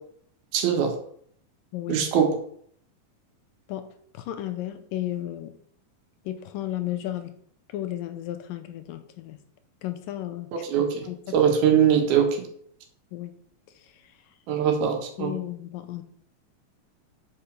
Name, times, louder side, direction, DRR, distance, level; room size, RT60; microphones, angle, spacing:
voice 1, 0.5-0.9 1.9-2.3 10.5-11.1 11.3-12.4 14.5-15.3, right 8 dB, 85° right, 4 dB, 3.3 m, -22 dB
voice 2, 1.7-2.0 3.7-3.9 4.1-5.5 6.3-7.3 7.7-9.4 9.8-10.7 11.0-11.2 13.1-13.3 15.2-16.0, left 13 dB, 80° left, 9 dB, 2.3 m, -33 dB
6.5 x 5.9 x 6.5 m, 0.62 s
omnidirectional pair, 4.2 m